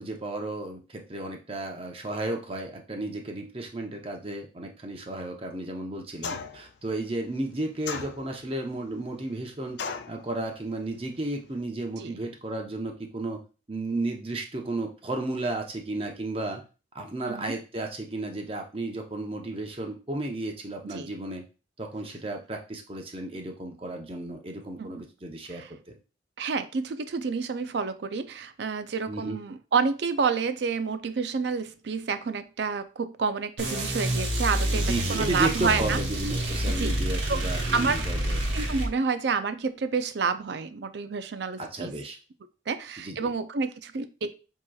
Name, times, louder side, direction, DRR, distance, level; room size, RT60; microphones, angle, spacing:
voice 1, 0.0-9.8 10.1-13.4 13.7-16.6 16.9-21.4 21.8-25.6 29.1-29.4 34.7-38.4 41.6-42.2 43.0-43.3, right 2 dB, 30° right, 2 dB, 0.7 m, -33 dB
sound 1, 6.2-6.7 7.9-8.5 9.8-10.2, left 5 dB, 65° left, 0.4 m, -35 dB
voice 2, 26.4-34.8 35.1-36.0 36.8-36.9 37.3-37.4 37.7-38.1 38.5-41.9 42.7-44.3, right 5 dB, 65° right, 10 dB, 0.4 m, -29 dB
sound 2, 33.6-38.9, right 1 dB, 85° right, 1.3 m, -28 dB
7.5 x 2.9 x 2.3 m, 0.33 s
head